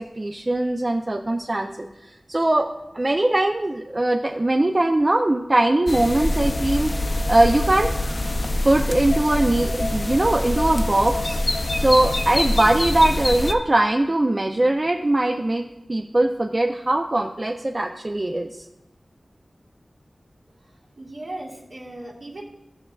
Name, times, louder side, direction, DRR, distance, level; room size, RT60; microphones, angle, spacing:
voice 1, 0.2-1.9 2.3-2.7 2.9-7.9 8.6-11.4 11.8-18.6, right 1 dB, 35° right, 3 dB, 0.4 m, -21 dB
sound 1, 5.9-13.5, left 1 dB, 45° left, 0.5 m, -25 dB
voice 2, 20.6-22.4, right 1 dB, 65° right, -4 dB, 2.0 m, -38 dB
13.5 x 6.9 x 2.3 m, 0.92 s
wide cardioid pair, 80°, 0 cm